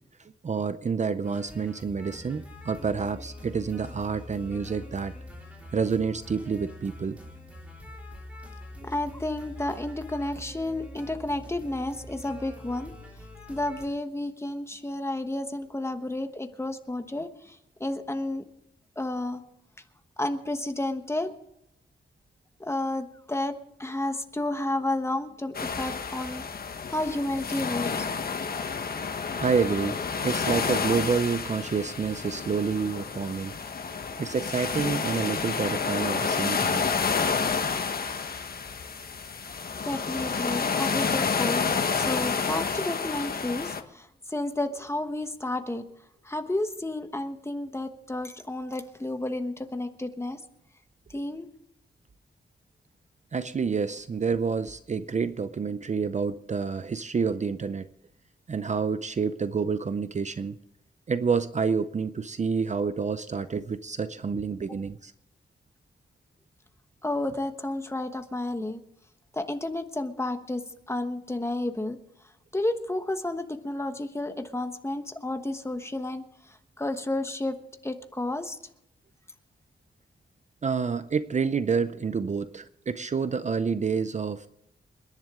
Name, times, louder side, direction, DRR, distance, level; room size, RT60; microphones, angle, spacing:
voice 1, 0.2-5.1 5.7-7.2 29.4-33.6 34.2-36.9 53.3-57.9 58.5-60.6 61.1-65.1 80.6-84.5, right 5 dB, 40° right, 12 dB, 0.6 m, -28 dB
sound 1, 1.2-13.8, left 1 dB, 5° right, 3.7 m, -44 dB
voice 2, 8.8-12.9 13.5-18.4 19.0-19.4 20.2-21.3 22.6-26.4 26.9-28.1 39.8-41.6 41.9-45.8 46.2-50.4 51.1-51.5 67.0-68.8 69.3-70.6 70.9-72.0 72.5-77.6 77.8-78.6, left 1 dB, 15° left, 7 dB, 1.2 m, -31 dB
sound 2, 25.5-43.8, left 5 dB, 50° left, 1.2 m, -29 dB
28.5 x 10.5 x 3.7 m, 0.78 s
wide cardioid pair, 150°, 19 cm